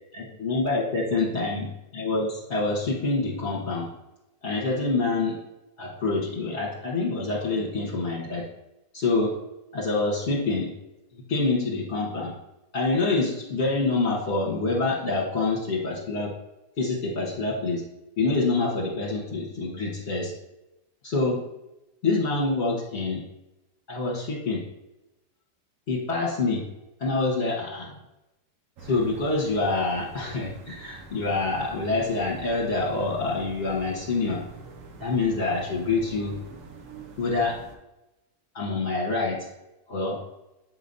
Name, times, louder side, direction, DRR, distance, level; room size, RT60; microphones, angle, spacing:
voice 1, 0.1-3.9 4.4-5.4 5.8-8.5 8.9-9.4 9.7-10.7 11.1-12.3 12.7-16.4 16.8-17.8 18.2-20.3 21.0-21.4 22.0-23.2 23.9-24.6 25.9-26.7 27.0-27.9 28.8-34.4 35.0-36.4 37.2-37.6 38.5-39.5 39.9-40.2, left 3 dB, 40° left, -5 dB, 1.5 m, -26 dB
sound 1, 28.8-37.8, right 3 dB, 55° right, 1.1 m, -45 dB
8.2 x 5.1 x 2.6 m, 0.95 s
omnidirectional pair, 1.8 m